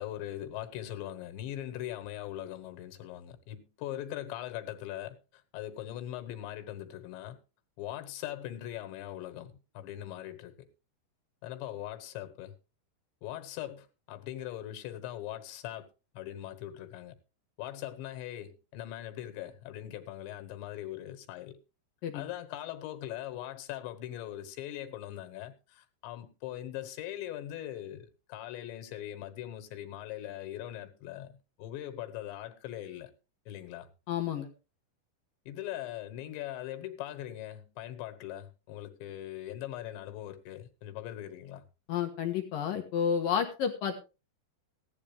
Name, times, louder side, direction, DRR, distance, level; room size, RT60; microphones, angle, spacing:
voice 1, 0.0-5.2 5.5-7.4 7.8-10.7 11.4-12.6 13.2-15.9 16.2-17.2 17.6-21.6 22.1-33.1 33.5-33.9 35.5-41.6, left 12 dB, 90° left, 3.7 m, -41 dB
voice 2, 34.1-34.5 41.9-44.0, left 8 dB, 65° left, 2.6 m, -30 dB
16.0 x 11.5 x 3.3 m
omnidirectional pair, 5.0 m